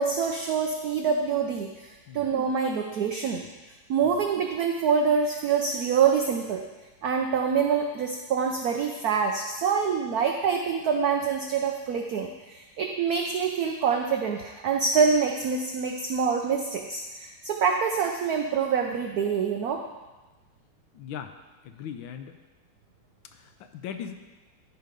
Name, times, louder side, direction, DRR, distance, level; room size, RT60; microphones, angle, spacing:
voice 1, 0.0-3.4 3.9-6.6 7.0-19.8, right 6 dB, 75° right, 3 dB, 0.8 m, -26 dB
voice 2, 20.9-21.3 21.6-22.4 23.3-24.2, left 8 dB, 75° left, 7 dB, 1.3 m, -39 dB
12.5 x 4.8 x 5.2 m, 1.2 s
omnidirectional pair, 2.3 m